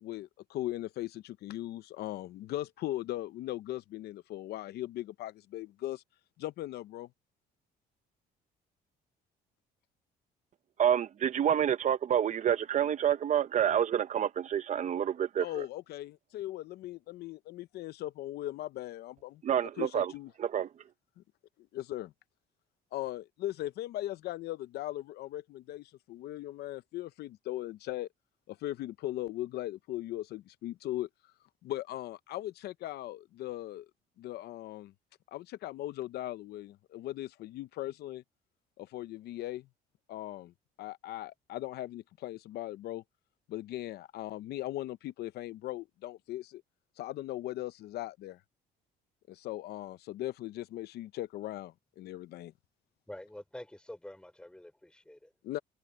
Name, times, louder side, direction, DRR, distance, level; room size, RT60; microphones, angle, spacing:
voice 1, 0.0-6.0 6.4-7.1 15.4-19.4 19.8-20.3 21.7-22.1 22.9-28.1 28.5-31.1 31.6-33.9 34.2-34.9 35.3-38.2 38.8-39.7 40.1-40.5 40.8-43.0 43.5-46.6 47.0-48.4 49.3-52.5 55.4-55.6, left 15 dB, 70° left, 0.7 m, -39 dB
voice 2, 10.8-15.5 19.4-20.1 20.4-20.7, right 9 dB, 45° right, 0.8 m, -28 dB
voice 3, 53.1-55.3, left 1 dB, 5° left, 4.2 m, -47 dB
cardioid pair, 110°, 17 cm